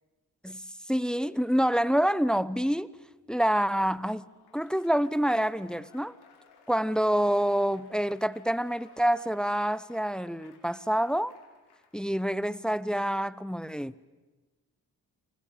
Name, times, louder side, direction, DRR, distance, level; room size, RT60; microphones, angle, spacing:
voice 1, 0.9-2.9 3.3-4.3 4.5-6.2 6.7-11.3 11.9-14.1, equal, ahead, 19 dB, 0.9 m, -27 dB
Applause / Crowd, 3.9-12.1, left 6 dB, 85° left, 4.2 m, -59 dB
29.0 x 24.0 x 8.6 m, 1.2 s
cardioid pair, 60°, 38 cm